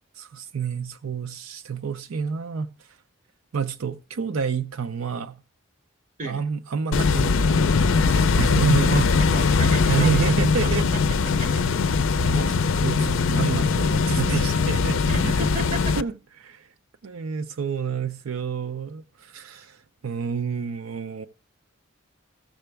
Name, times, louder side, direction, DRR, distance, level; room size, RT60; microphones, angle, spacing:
voice 1, 0.1-3.0 3.5-5.4 6.2-9.1 9.9-10.9 12.2-15.5 16.0-16.1 16.4-16.7 17.0-21.3, right 6 dB, 90° right, 0.5 m, -28 dB
sound 1, 6.9-16.0, left 4 dB, 75° left, 0.5 m, -21 dB
voice 2, 9.3-10.5 11.4-11.6 15.1-16.0, right 3 dB, 35° right, 0.7 m, -33 dB
14.5 x 6.8 x 3.3 m
head